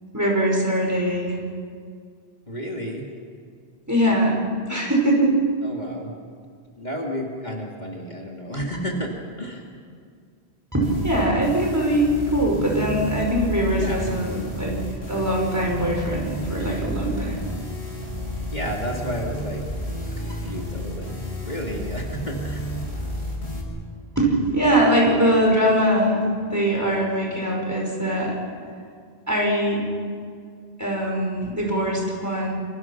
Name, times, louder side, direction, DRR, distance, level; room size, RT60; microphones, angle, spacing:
voice 1, 0.1-1.4 3.9-4.4 4.7-5.3 8.5-8.6 10.7-14.7 15.1-17.4 20.1-20.2 24.2-26.2 26.5-28.4 29.3-29.8 30.8-32.5, right 1 dB, 15° right, -2 dB, 5.6 m, -22 dB
voice 2, 2.5-3.0 5.6-6.1 6.8-9.1 9.4-9.6 13.8-14.1 18.5-19.6 19.9-22.7, equal, 45° left, -1 dB, 2.7 m, -32 dB
sound 1, 10.8-23.6, equal, 75° left, 6.1 m, -31 dB
28.0 x 25.5 x 6.1 m, 2.2 s
omnidirectional pair, 1.1 m